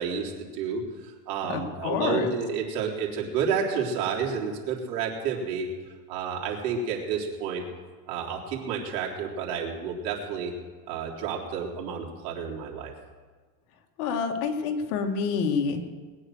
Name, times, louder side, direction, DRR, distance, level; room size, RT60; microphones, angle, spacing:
voice 1, 0.0-5.7 6.1-7.6 8.1-10.5 10.9-12.9, right 6 dB, 85° right, -1 dB, 3.7 m, -30 dB
voice 2, 1.5-2.3 14.0-16.0, left 5 dB, 65° left, 3 dB, 2.2 m, -28 dB
21.0 x 10.0 x 6.4 m, 1.4 s
cardioid pair, 170°, 47 cm